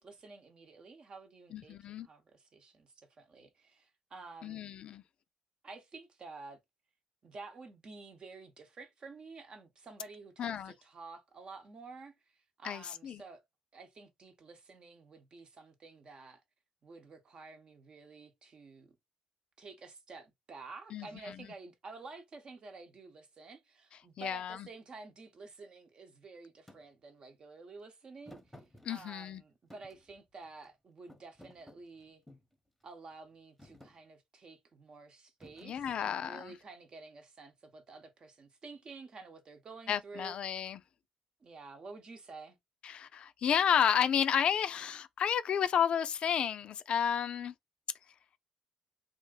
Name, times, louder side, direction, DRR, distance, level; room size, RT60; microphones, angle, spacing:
voice 1, 0.0-4.7 5.6-6.6 7.2-12.1 12.6-13.4 13.7-16.4 16.8-18.9 19.6-28.6 28.9-32.2 32.8-40.3 41.4-42.6, right 3 dB, 45° right, 0.8 m, -51 dB
voice 2, 1.5-2.1 4.4-5.0 10.4-10.7 12.6-13.2 20.9-21.4 24.2-24.7 28.8-29.4 35.6-36.5 39.9-40.8 42.8-47.5, left 8 dB, 60° left, 0.3 m, -31 dB
Thump thud, 26.7-26.8 28.3-29.3 29.7-30.7 31.1-32.5 33.1-33.3 33.6-34.0 35.4-36.5, left 1 dB, 5° left, 0.8 m, -56 dB
2.5 x 2.1 x 3.8 m
supercardioid pair, 60°, 2 cm